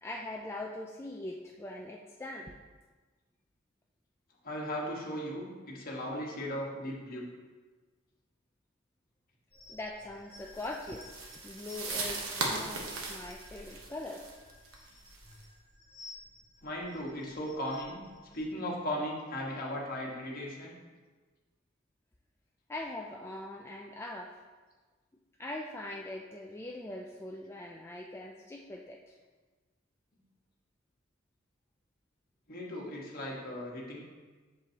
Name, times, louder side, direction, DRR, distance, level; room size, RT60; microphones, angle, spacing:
voice 1, 0.0-2.5 9.7-14.2 22.7-24.4 25.4-29.2, left 1 dB, 10° left, -1 dB, 0.3 m, -42 dB
voice 2, 4.4-7.3 16.6-18.0 18.3-20.7 32.5-34.0, equal, 45° left, -3 dB, 1.5 m, -37 dB
sound 1, 9.5-18.4, left 2 dB, 25° right, 2.0 m, -55 dB
sound 2, 10.5-15.4, right 3 dB, 90° right, 1.2 m, -38 dB
7.6 x 6.8 x 2.9 m, 1.3 s
head